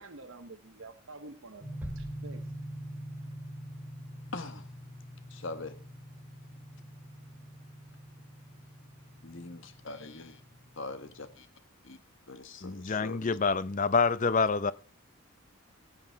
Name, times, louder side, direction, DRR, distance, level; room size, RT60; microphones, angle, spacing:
voice 1, 0.0-1.7 1.9-2.5, right 3 dB, 60° right, 0.9 m, -48 dB
sound 1, 1.6-11.3, equal, 35° right, 2.5 m, -45 dB
sound 2, 1.8-3.2, equal, 10° right, 1.3 m, -46 dB
voice 2, 4.3-4.7 5.3-5.8 9.2-10.4 10.8-11.5 11.8-12.0 12.3-13.3, left 3 dB, 60° left, 1.3 m, -42 dB
voice 3, 12.6-14.7, left 4 dB, 35° left, 0.5 m, -27 dB
17.5 x 8.1 x 4.5 m
head